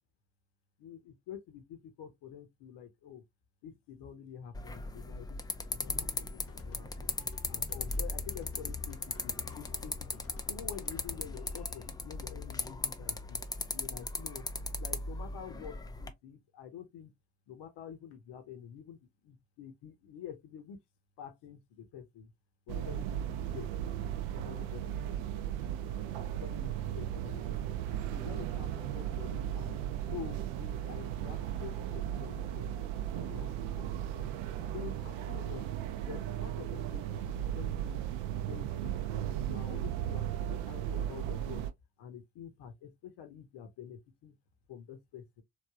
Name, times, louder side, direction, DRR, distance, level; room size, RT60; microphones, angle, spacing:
voice 1, 0.8-3.2 3.6-7.1 7.5-13.4 13.7-14.5 14.8-17.1 17.5-20.8 21.2-22.3 22.7-23.7 24.3-25.1 26.3-27.7 28.1-29.7 30.1-32.7 33.1-34.3 34.7-35.7 36.1-38.0 38.5-41.6 42.0-44.3 44.7-45.4, left 8 dB, 60° left, 0.8 m, -48 dB
sound 1, 4.5-16.1, left 3 dB, 10° left, 0.3 m, -38 dB
sound 2, 6.4-11.9, left 2 dB, 30° left, 0.8 m, -52 dB
sound 3, 22.7-41.7, right 11 dB, 70° right, 0.5 m, -36 dB
3.2 x 2.3 x 2.3 m
hypercardioid pair, 40°, 46 cm